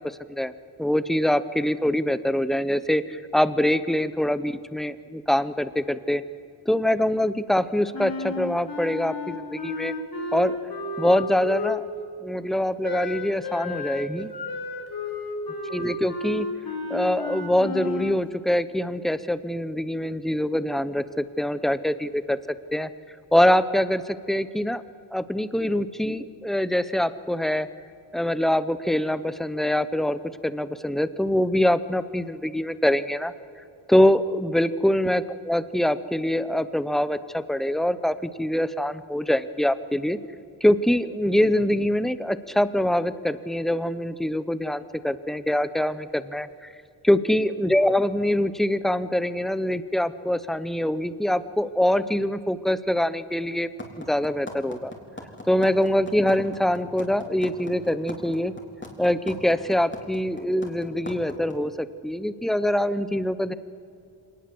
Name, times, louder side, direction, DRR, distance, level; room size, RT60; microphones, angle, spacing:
voice 1, 0.8-6.2 6.7-9.9 10.3-10.6 11.0-11.9 12.2-14.3 15.7-16.5 16.9-22.4 22.7-22.9 23.3-24.8 25.1-27.7 28.1-33.3 33.9-40.2 40.6-46.7 47.0-53.7 54.0-54.9 55.5-58.5 59.0-63.5, left 1 dB, ahead, 14 dB, 0.8 m, -24 dB
Wind instrument woodwind instrument, 7.9-12.1 12.8-18.2, left 3 dB, 45° left, 3.3 m, -32 dB
sound 1, 53.8-61.5, left 2 dB, 25° left, 3.7 m, -38 dB
25.5 x 19.0 x 7.9 m, 2.5 s
wide cardioid pair, 105°, 48 cm